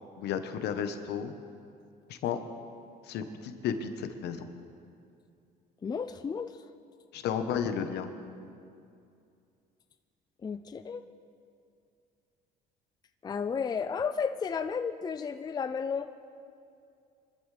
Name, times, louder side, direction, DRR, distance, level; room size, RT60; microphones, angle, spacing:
voice 1, 0.2-1.3 2.1-2.4 3.0-4.5 7.1-8.1, left 7 dB, 75° left, 8 dB, 1.2 m, -33 dB
voice 2, 5.8-6.6 10.4-11.1 13.2-16.1, left 6 dB, 25° left, 9 dB, 0.5 m, -33 dB
24.5 x 13.0 x 3.4 m, 2.5 s
cardioid pair, 110°, 17 cm